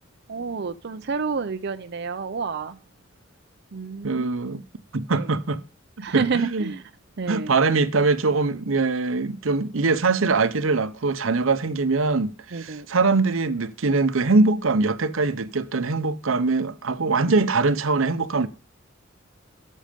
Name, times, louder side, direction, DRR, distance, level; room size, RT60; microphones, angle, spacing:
voice 1, 0.3-2.8 3.7-4.3 5.1-5.3 6.0-6.8 7.2-7.5 12.5-12.9, right 5 dB, 55° right, 0.6 m, -29 dB
voice 2, 4.0-4.6 4.9-5.6 6.0-6.7 7.3-18.5, right 3 dB, 90° right, 0.8 m, -22 dB
13.0 x 6.4 x 5.1 m
head